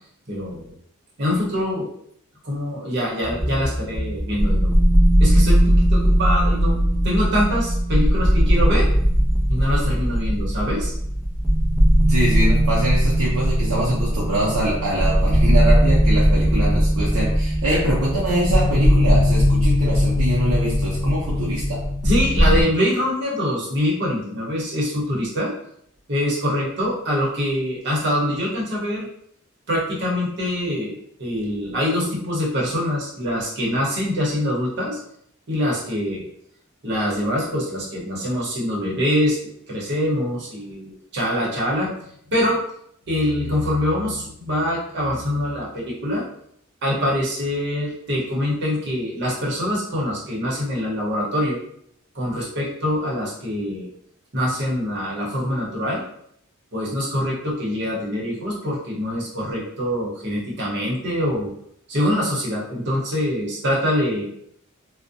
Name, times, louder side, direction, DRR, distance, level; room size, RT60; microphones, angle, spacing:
voice 1, 0.3-0.7 1.2-1.9 2.4-4.7 5.2-8.9 9.5-10.9 22.0-25.5 26.1-29.1 29.7-30.9 31.2-35.0 35.5-36.2 36.8-39.4 39.7-41.9 42.3-42.6 43.1-46.2 46.8-51.6 52.1-53.9 54.3-56.0 56.7-61.5 61.9-64.3, left 1 dB, 55° right, -4 dB, 0.9 m, -24 dB
sound 1, 3.2-22.6, equal, ahead, 0.4 m, -19 dB
voice 2, 12.1-21.8, right 1 dB, 80° right, -6 dB, 0.6 m, -24 dB
2.5 x 2.1 x 2.5 m, 0.68 s
head